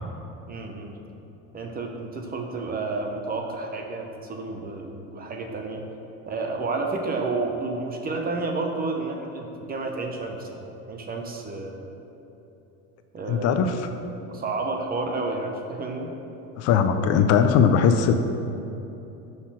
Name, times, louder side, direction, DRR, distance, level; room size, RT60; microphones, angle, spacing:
voice 1, 0.5-1.0 1.5-5.8 6.3-11.9 13.1-16.1, right 3 dB, 25° right, 2 dB, 0.6 m, -31 dB
voice 2, 13.3-13.9 16.6-18.2, left 7 dB, 45° left, 8 dB, 0.4 m, -20 dB
6.1 x 3.9 x 6.0 m, 3.0 s
supercardioid pair, 120°, 36 cm